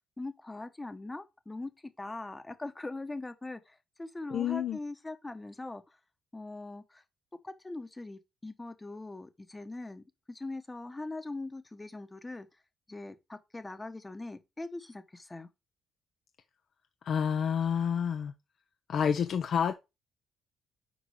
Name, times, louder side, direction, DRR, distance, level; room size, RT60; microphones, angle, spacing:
voice 1, 0.2-1.7 2.0-6.0 6.3-7.0 7.4-12.5 12.9-15.5, left 2 dB, 15° left, 1.0 m, -41 dB
voice 2, 4.3-4.8 17.0-18.3 18.9-19.7, left 7 dB, 60° left, 0.7 m, -29 dB
6.3 x 4.6 x 4.8 m
cardioid pair, 90°, 0 cm